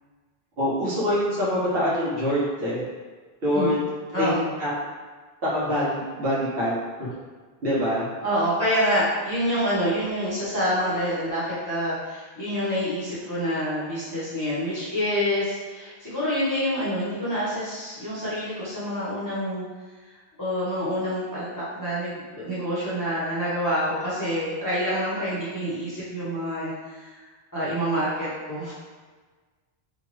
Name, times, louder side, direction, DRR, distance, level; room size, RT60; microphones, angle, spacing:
voice 1, 0.6-2.8 3.4-3.8 4.2-4.3 4.6-4.7 5.4-7.1 7.6-8.1, equal, 65° right, -9 dB, 1.1 m, -25 dB
voice 2, 4.1-4.5 8.2-19.6 20.4-27.1 27.5-28.7, equal, 20° left, -12 dB, 0.8 m, -27 dB
2.8 x 2.3 x 3.0 m, 1.4 s
omnidirectional pair, 1.1 m